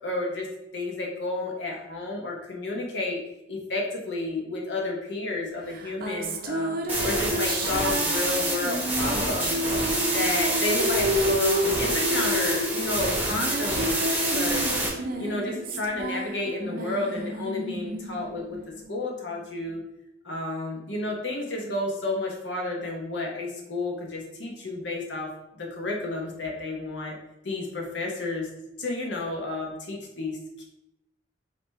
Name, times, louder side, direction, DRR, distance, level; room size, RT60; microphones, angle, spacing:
voice 1, 0.0-0.5 0.7-3.2 3.5-6.8 7.0-9.6 10.1-14.7 15.2-19.8 20.2-25.3 25.5-27.2 27.4-28.5 28.8-30.6, left 2 dB, 70° left, -1 dB, 1.1 m, -31 dB
sound 1, 5.7-19.4, equal, 50° right, 0.5 m, -30 dB
sound 2, 6.9-14.9, right 1 dB, 10° right, 1.1 m, -27 dB
5.0 x 2.9 x 3.4 m, 0.86 s
head